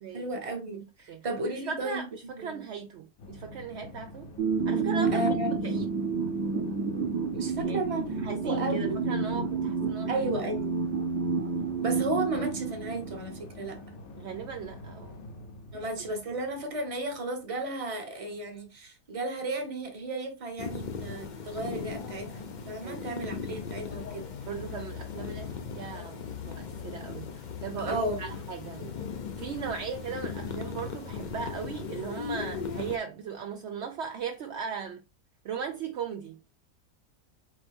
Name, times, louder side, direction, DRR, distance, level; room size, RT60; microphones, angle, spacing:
voice 1, 0.1-2.0 2.4-2.6 5.1-5.6 7.3-9.0 10.1-10.7 11.8-13.8 15.7-24.3 27.9-28.2 28.8-28.9, right 2 dB, 25° right, 0.9 m, -34 dB
voice 2, 1.1-4.4 4.7-6.1 7.6-7.8 8.2-10.1 14.2-15.3 15.7-15.9 22.8-23.2 23.5-23.9 24.5-28.9 29.4-35.0 35.4-36.4, right 6 dB, 70° right, 0.6 m, -38 dB
sound 1, 3.2-17.6, left 1 dB, 55° left, 0.9 m, -46 dB
sound 2, 4.4-13.4, right 4 dB, 45° right, 1.2 m, -30 dB
sound 3, 20.6-33.0, left 6 dB, 80° left, 0.4 m, -38 dB
4.6 x 2.9 x 3.4 m
omnidirectional pair, 1.7 m